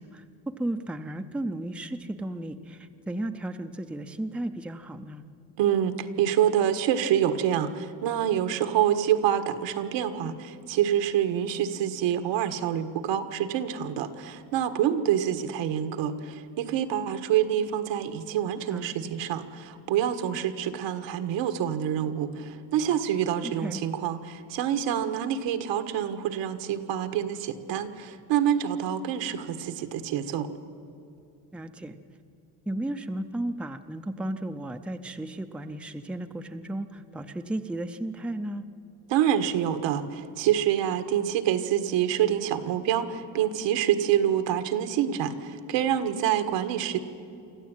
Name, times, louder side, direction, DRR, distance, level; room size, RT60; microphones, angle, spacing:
voice 1, 0.0-5.2 18.7-18.9 23.4-23.8 31.5-32.0 32.7-38.6, right 1 dB, 5° right, 7 dB, 0.6 m, -34 dB
voice 2, 5.6-30.5 39.1-47.0, right 10 dB, 80° right, 8 dB, 1.6 m, -27 dB
25.0 x 14.0 x 9.0 m, 2.6 s
cardioid pair, 150°, 43 cm